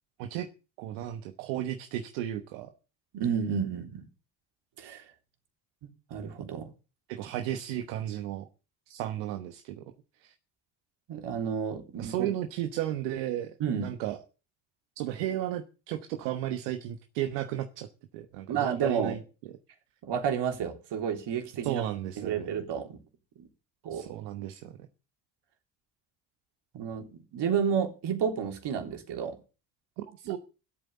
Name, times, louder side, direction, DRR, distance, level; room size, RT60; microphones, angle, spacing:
voice 1, 0.2-0.5 0.8-2.7 7.1-8.5 8.9-9.8 10.2-10.3 11.9-14.2 15.0-17.9 18.1-19.2 21.6-22.5 23.9-24.8 30.0-30.4, right 12 dB, 85° right, 1.2 m, -34 dB
voice 2, 3.1-4.1 4.8-5.0 6.1-6.7 11.1-12.3 13.6-13.9 18.5-19.1 20.0-21.8 22.2-23.0 23.4-23.5 23.8-24.1 26.7-29.4, right 7 dB, 65° right, 3.7 m, -31 dB
13.5 x 8.7 x 7.0 m
supercardioid pair, 65°, 45 cm